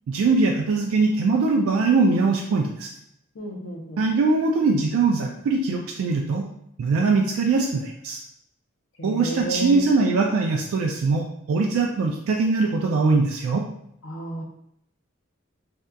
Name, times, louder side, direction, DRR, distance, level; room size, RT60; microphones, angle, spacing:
voice 1, 0.1-2.9 4.0-6.5 6.8-8.2 9.0-13.7, right 3 dB, 90° right, 1 dB, 0.3 m, -22 dB
voice 2, 3.4-4.0 9.0-9.8 14.0-14.4, equal, 65° left, 0 dB, 0.5 m, -31 dB
2.7 x 2.3 x 2.2 m, 0.76 s
head